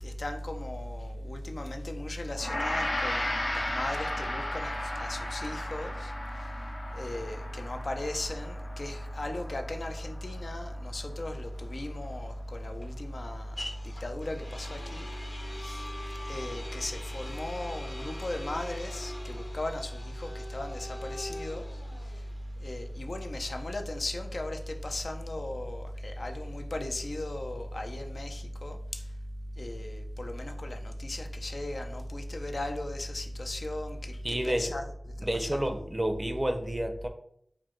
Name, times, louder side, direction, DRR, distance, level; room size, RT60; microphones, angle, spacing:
voice 1, 0.0-6.1 6.9-13.5 14.0-15.0 15.6-15.8 16.3-21.6 22.6-28.8 29.6-34.8 35.4-35.6, left 1 dB, 65° left, 0.4 m, -36 dB
Gong, 2.4-11.7, left 1 dB, 85° left, 0.9 m, -36 dB
sound 1, 11.2-25.0, left 1 dB, 50° left, 0.8 m, -44 dB
voice 2, 34.2-34.7 35.2-37.1, right 1 dB, 25° right, 0.5 m, -30 dB
4.5 x 2.1 x 3.7 m
wide cardioid pair, 60°, 0 cm